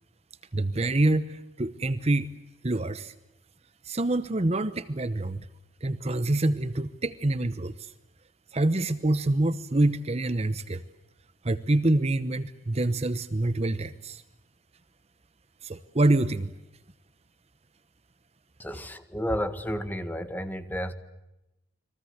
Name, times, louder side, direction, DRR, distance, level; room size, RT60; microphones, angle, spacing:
voice 1, 0.5-2.3 2.6-3.1 3.8-5.5 5.8-7.9 8.5-10.8 11.4-14.2 15.6-16.5, right 2 dB, 35° right, 13 dB, 0.9 m, -26 dB
voice 2, 18.6-20.9, equal, 10° left, 9 dB, 1.8 m, -32 dB
30.0 x 23.0 x 8.0 m, 0.92 s
head